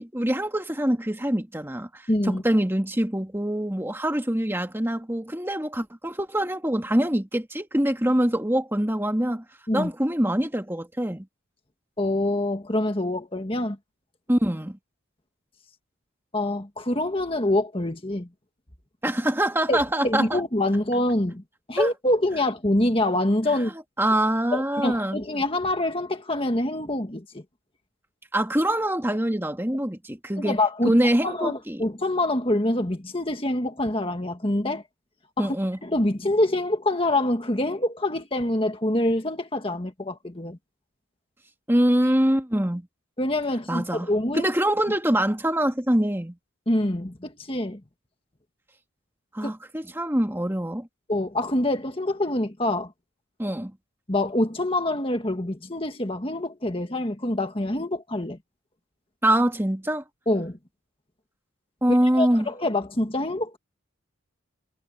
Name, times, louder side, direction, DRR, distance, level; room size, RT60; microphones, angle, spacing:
voice 1, 0.0-9.4 9.7-11.3 14.3-14.8 19.0-20.4 21.8-21.9 24.0-25.2 28.3-30.6 30.8-31.8 35.4-35.8 41.7-42.9 43.7-46.4 49.3-50.9 53.4-53.7 59.2-60.0 61.8-62.5, right 1 dB, 10° right, 2.1 m, -24 dB
voice 2, 2.1-2.4 9.7-9.9 12.0-13.8 16.3-18.3 19.7-21.4 21.7-23.7 24.5-27.4 30.4-30.9 31.2-34.8 35.4-35.6 35.8-40.6 43.2-44.5 46.7-47.8 49.4-49.5 51.1-52.9 54.1-58.4 60.3-60.6 62.1-63.6, left 1 dB, 25° left, 1.7 m, -25 dB
head